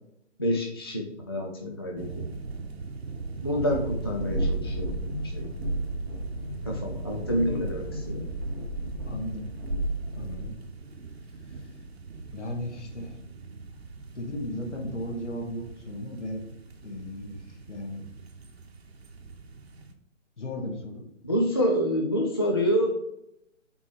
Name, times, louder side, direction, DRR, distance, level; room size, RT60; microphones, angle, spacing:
voice 1, 0.4-2.3 3.4-4.9 5.2-5.5 6.6-8.3 21.2-22.9, equal, 20° left, 0 dB, 0.4 m, -27 dB
sound 1, 2.0-19.9, right 4 dB, 55° right, 0.9 m, -42 dB
Train, 3.6-10.5, right 1 dB, 5° right, 0.7 m, -32 dB
voice 2, 9.0-9.5 10.1-10.6 11.5-11.7 12.3-13.2 14.1-16.4 16.8-18.0 20.4-21.1, left 1 dB, 65° left, 1 dB, 2.0 m, -36 dB
8.1 x 3.6 x 3.3 m, 0.78 s
figure-of-eight pair, 140°, 37 cm